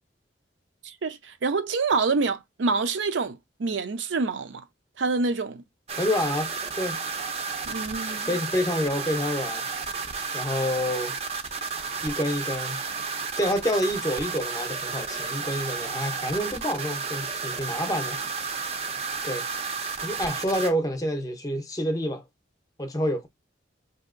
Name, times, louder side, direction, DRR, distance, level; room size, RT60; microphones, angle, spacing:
voice 1, 0.8-4.6 5.0-5.6 7.7-8.3, right 4 dB, 80° right, 0.5 m, -27 dB
sound 1, 5.9-20.7, right 5 dB, 35° right, 0.5 m, -32 dB
voice 2, 6.0-6.5 6.8-7.0 8.2-9.7 10.3-11.1 12.0-12.8 13.4-18.2 19.2-19.4 20.0-22.2 22.8-23.3, equal, 20° left, 0.6 m, -28 dB
5.5 x 2.7 x 2.5 m
head